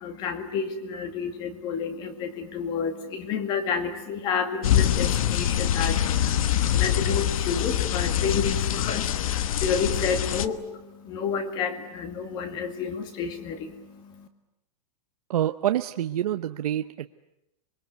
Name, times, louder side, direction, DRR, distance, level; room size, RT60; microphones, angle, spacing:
voice 1, 0.0-14.3, left 6 dB, 20° left, 9 dB, 2.2 m, -30 dB
sound 1, 4.6-10.5, left 10 dB, 60° left, 1.2 m, -24 dB
voice 2, 15.3-17.2, right 11 dB, 70° right, 8 dB, 0.9 m, -27 dB
26.5 x 22.5 x 9.3 m, 0.88 s
supercardioid pair, 175°, 20 cm